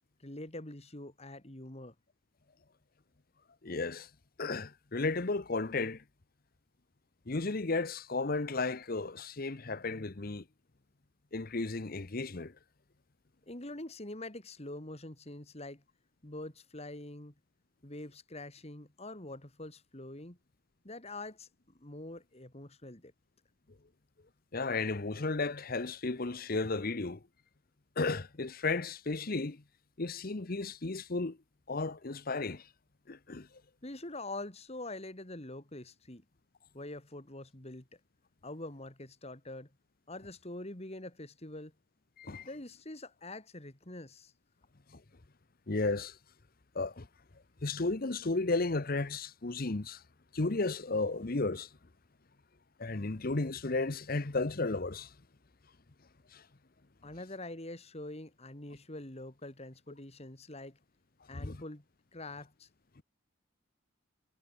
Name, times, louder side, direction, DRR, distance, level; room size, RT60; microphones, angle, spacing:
voice 1, 0.2-1.9 13.5-15.8 16.2-17.3 17.8-20.4 20.8-21.5 21.8-23.1 33.8-36.2 36.7-37.9 38.4-39.7 40.1-41.7 42.4-44.3 57.0-60.8 61.3-61.8 62.1-62.7, left 2 dB, 30° left, 2.8 m, -45 dB
voice 2, 3.6-4.1 4.4-6.0 7.3-10.4 11.3-12.5 24.5-27.2 28.0-29.6 30.0-31.4 31.7-32.7 33.1-33.5 42.2-42.5 44.9-45.0 45.7-46.2 46.7-47.1 47.6-50.0 50.3-51.7 52.8-55.1 56.3-56.4 61.3-61.6 63.0-63.1, left 3 dB, 45° left, 1.0 m, -34 dB
head